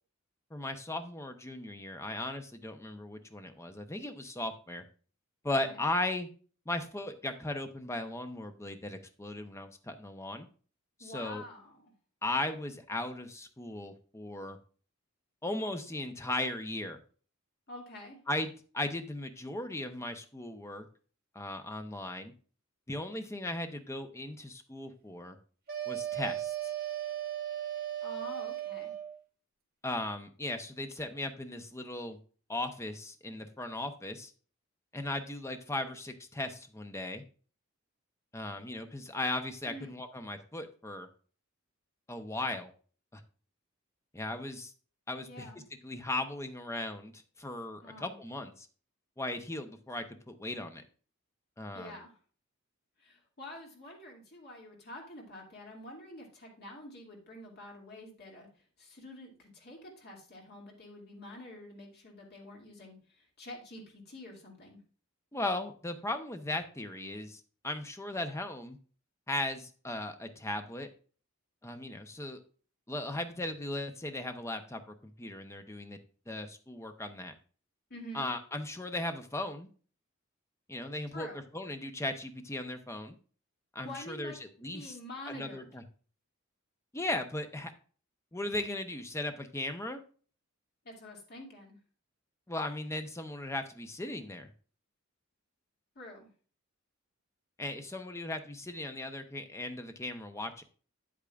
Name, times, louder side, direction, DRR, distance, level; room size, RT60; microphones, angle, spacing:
voice 1, 0.5-4.8 5.4-6.3 6.7-10.5 11.0-11.4 12.2-14.6 15.4-17.0 18.3-20.9 21.3-22.3 22.9-25.4 25.9-26.7 29.8-32.2 32.5-34.3 34.9-37.2 38.3-41.1 42.1-42.7 43.1-43.2 44.1-44.7 45.1-45.5 45.8-48.7 49.2-50.8 51.6-52.0 65.3-68.8 69.3-70.9 71.6-72.4 72.9-76.0 76.3-77.3 78.1-79.7 80.7-81.3 81.5-83.2 83.7-85.0 85.3-85.8 86.9-87.7 88.3-90.0 92.5-94.5 97.6-100.6, left 2 dB, 15° left, 7 dB, 0.7 m, -37 dB
voice 2, 11.0-11.9 17.7-18.2 28.0-28.9 39.7-39.9 45.2-45.6 47.8-48.2 51.7-52.2 53.0-58.5 58.8-64.8 77.9-78.3 81.1-81.4 83.8-84.4 84.7-85.7 90.8-91.8 96.0-96.3, left 1 dB, 50° left, -1 dB, 2.4 m, -47 dB
sound 1, 25.7-29.2, right 12 dB, 45° right, 1.5 m, -36 dB
8.9 x 8.4 x 2.4 m, 0.40 s
head